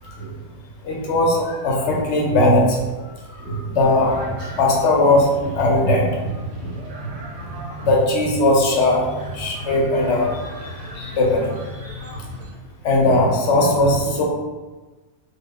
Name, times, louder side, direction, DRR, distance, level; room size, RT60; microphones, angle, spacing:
voice 1, 0.8-2.9 3.2-6.7 7.0-7.1 7.8-9.1 9.3-11.5 11.8-11.9 12.8-14.2, left 2 dB, 60° left, -2 dB, 0.8 m, -19 dB
sound 1, 4.0-12.5, right 1 dB, 60° right, 0.8 m, -34 dB
2.3 x 2.2 x 3.5 m, 1.2 s
omnidirectional pair, 1.5 m